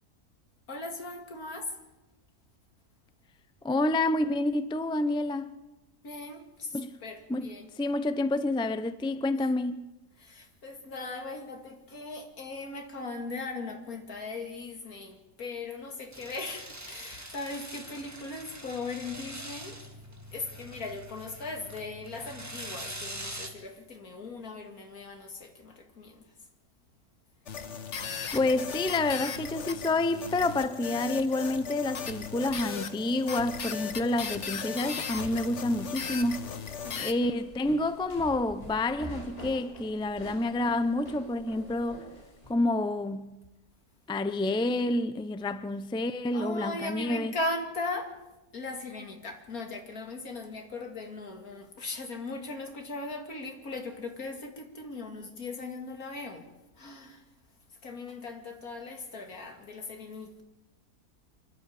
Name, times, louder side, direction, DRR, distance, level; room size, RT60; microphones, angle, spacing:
voice 1, 0.7-1.8 6.0-7.7 10.2-19.8 20.3-26.3 36.8-37.3 46.3-48.1 48.5-56.5 56.8-57.2 57.8-60.4, left 3 dB, 80° left, 2.8 m, -38 dB
voice 2, 3.6-5.5 6.7-7.0 7.3-7.5 7.8-9.9 28.3-36.5 37.0-42.1 42.5-43.3 44.1-47.3, left 2 dB, 5° left, 0.5 m, -28 dB
sound 1, 16.1-23.5, right 1 dB, 10° right, 1.8 m, -43 dB
sound 2, 27.5-37.1, left 6 dB, 55° left, 1.4 m, -37 dB
sound 3, 35.1-42.5, equal, 25° left, 4.6 m, -46 dB
26.0 x 12.0 x 8.7 m
omnidirectional pair, 1.5 m